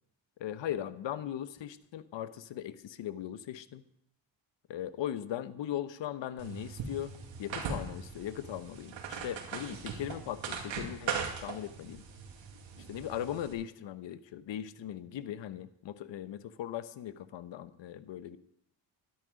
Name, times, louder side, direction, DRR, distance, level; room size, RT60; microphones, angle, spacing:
voice 1, 0.4-3.8 4.7-11.1 11.4-12.0 12.9-18.4, left 11 dB, 70° left, 14 dB, 0.9 m, -39 dB
sound 1, 6.4-13.5, right 6 dB, 75° right, 2.2 m, -40 dB
12.5 x 10.5 x 5.2 m, 0.74 s
cardioid pair, 70°, 46 cm